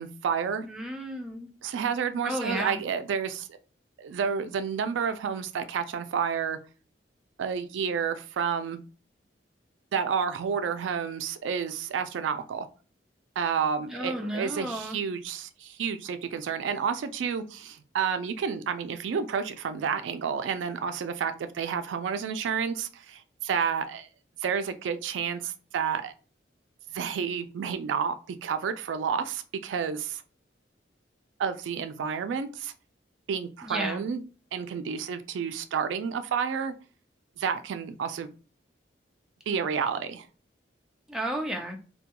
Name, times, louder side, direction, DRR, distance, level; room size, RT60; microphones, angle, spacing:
voice 1, 0.0-0.7 1.6-3.5 4.0-6.6 7.4-8.8 9.9-12.7 13.4-24.1 24.4-26.1 26.9-30.2 31.4-32.7 33.3-34.2 34.5-36.7 37.4-38.3 39.5-40.3, right 6 dB, 85° right, 10 dB, 0.3 m, -30 dB
voice 2, 0.6-1.5 2.2-2.8 13.9-15.0 33.6-34.0 41.1-41.8, equal, 5° right, 1 dB, 0.3 m, -33 dB
2.2 x 2.2 x 2.8 m, 0.36 s
head